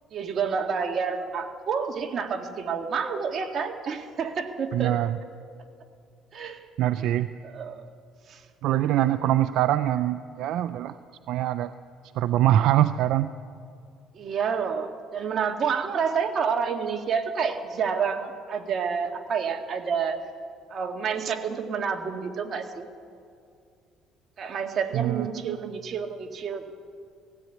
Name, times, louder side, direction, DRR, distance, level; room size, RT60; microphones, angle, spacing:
voice 1, 0.1-5.0 6.3-6.6 7.0-7.1 7.4-7.9 8.3-8.4 14.1-20.2 20.7-22.9 24.4-26.7, right 6 dB, 45° right, 4 dB, 2.1 m, -29 dB
voice 2, 4.7-5.2 6.8-7.3 8.6-11.0 11.3-11.7 12.1-13.3 24.9-25.6, right 12 dB, 75° right, 12 dB, 0.5 m, -23 dB
18.0 x 16.5 x 9.3 m, 2.4 s
cardioid pair, 110°, 0 cm